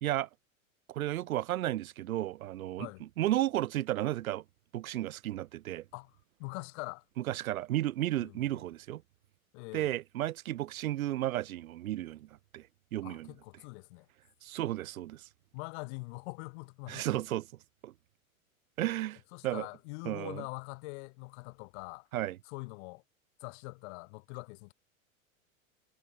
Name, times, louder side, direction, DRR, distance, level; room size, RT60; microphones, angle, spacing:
voice 1, 0.9-4.4 4.7-5.8 7.3-9.0 9.7-12.6 12.9-13.3 14.4-15.3 16.9-17.5 17.8-17.9 18.8-19.2 19.4-19.7 20.0-20.4 22.1-22.4, right 14 dB, 85° right, 0.6 m, -33 dB
voice 2, 5.9-7.0 8.2-8.4 9.5-9.9 13.0-14.1 15.5-17.2 19.3-22.1 22.4-23.0 23.4-24.7, left 29 dB, 55° left, 3.0 m, -43 dB
hypercardioid pair, 110°, 41 cm